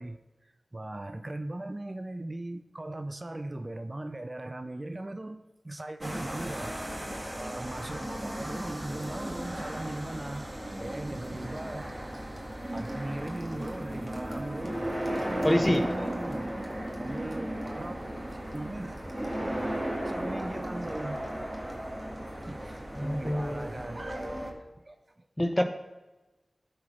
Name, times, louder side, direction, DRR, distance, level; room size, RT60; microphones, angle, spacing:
voice 1, 0.0-6.8 7.4-10.5 10.8-11.9 12.7-14.8 15.3-18.0 18.4-21.3 22.5-24.5 24.7-25.3, right 1 dB, 35° right, 9 dB, 0.5 m, -39 dB
sound 1, 6.0-24.5, right 1 dB, 20° right, 1.8 m, -35 dB
voice 2, 15.4-15.9 22.9-23.8 25.4-25.6, left 1 dB, 15° left, 6 dB, 1.0 m, -26 dB
12.5 x 4.4 x 5.7 m, 1.1 s
cardioid pair, 45°, 0 cm